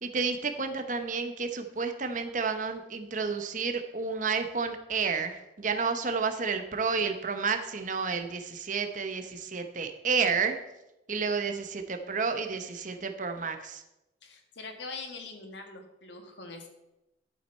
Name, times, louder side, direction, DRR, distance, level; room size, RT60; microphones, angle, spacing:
voice 1, 0.0-10.6 11.1-13.8, right 5 dB, 40° right, 6 dB, 0.9 m, -31 dB
voice 2, 14.2-16.7, left 3 dB, 70° left, 5 dB, 1.6 m, -43 dB
11.5 x 8.5 x 4.4 m, 0.94 s
head